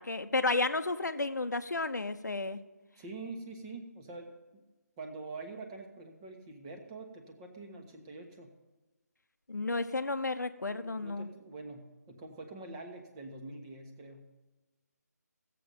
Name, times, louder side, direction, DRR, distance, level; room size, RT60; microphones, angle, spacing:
voice 1, 0.0-2.6 9.5-11.3, left 3 dB, 90° left, 9 dB, 0.9 m, -32 dB
voice 2, 3.0-4.6 5.0-8.5 10.6-14.3, right 3 dB, 20° right, 3 dB, 1.2 m, -45 dB
16.0 x 7.6 x 5.4 m, 1.1 s
figure-of-eight pair, 160°, 9 cm